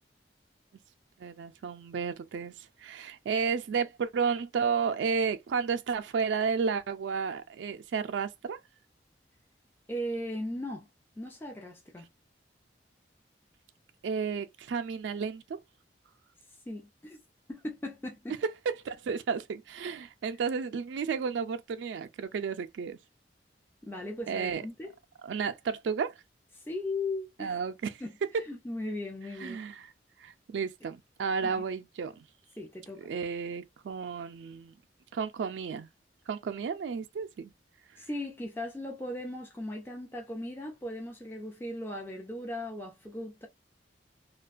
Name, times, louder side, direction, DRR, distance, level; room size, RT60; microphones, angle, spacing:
voice 1, 1.2-8.6 14.0-15.6 18.8-23.0 24.3-24.6 25.2-26.1 27.4-28.0 29.4-29.9 30.2-32.2 33.1-34.7 35.1-35.9 36.3-37.5, right 6 dB, 85° right, 0.3 m, -32 dB
voice 2, 9.9-10.9 11.2-12.1 16.7-17.2 17.5-18.4 23.8-24.9 26.6-27.6 28.0-29.6 31.4-31.6 32.6-33.1 38.0-43.5, left 1 dB, 10° left, 0.4 m, -38 dB
2.4 x 2.2 x 2.4 m
head